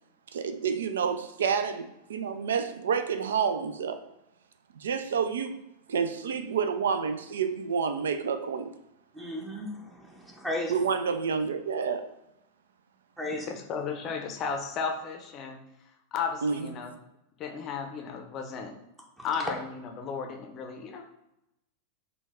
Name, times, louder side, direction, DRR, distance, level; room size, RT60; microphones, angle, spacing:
voice 1, 0.3-4.0 4.8-5.6 5.9-8.7 10.7-12.1 16.4-16.9, right 6 dB, 65° right, 0.4 m, -29 dB
voice 2, 9.1-10.7 13.2-13.5 19.2-19.3, left 1 dB, 10° right, 0.7 m, -35 dB
voice 3, 13.5-15.6 16.1-16.9 17.4-18.7 19.2-21.0, left 6 dB, 35° left, 0.6 m, -34 dB
3.9 x 2.3 x 3.4 m
figure-of-eight pair, 90°, 0 cm